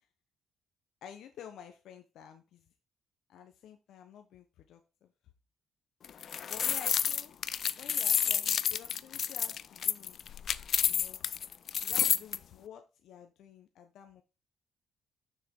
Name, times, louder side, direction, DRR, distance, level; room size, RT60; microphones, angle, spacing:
voice 1, 1.0-2.7 3.3-5.1 6.4-7.3 7.8-10.2 10.8-11.2 11.8-14.2, left 8 dB, 80° left, 6 dB, 1.0 m, -51 dB
sound 1, 6.0-12.4, left 8 dB, 60° left, 0.4 m, -29 dB
6.7 x 6.3 x 3.6 m, 0.29 s
cardioid pair, 90°, 0 cm